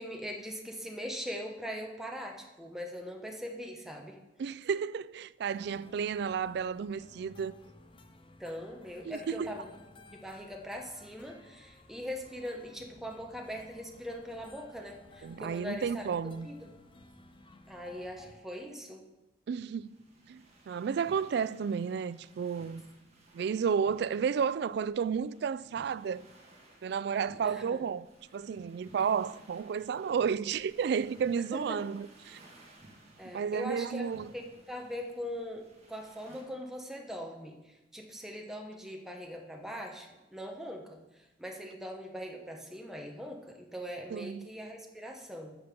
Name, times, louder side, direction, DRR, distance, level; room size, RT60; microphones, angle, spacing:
voice 1, 0.0-4.2 8.4-16.6 17.7-19.0 27.4-27.8 31.4-31.8 33.2-37.6 37.9-41.0 41.4-45.6, equal, ahead, 1.1 m, -41 dB
voice 2, 4.4-7.5 9.0-9.5 15.2-16.5 19.5-20.0 20.3-22.8 23.3-26.3 26.8-28.1 28.3-32.4 33.3-34.3 44.1-44.5, right 6 dB, 65° right, 0.3 m, -32 dB
sound 1, 5.5-18.4, left 2 dB, 30° left, 0.7 m, -56 dB
Waves and distant fireworks at night, 19.7-36.4, right 1 dB, 40° right, 2.0 m, -58 dB
11.5 x 6.8 x 5.2 m
head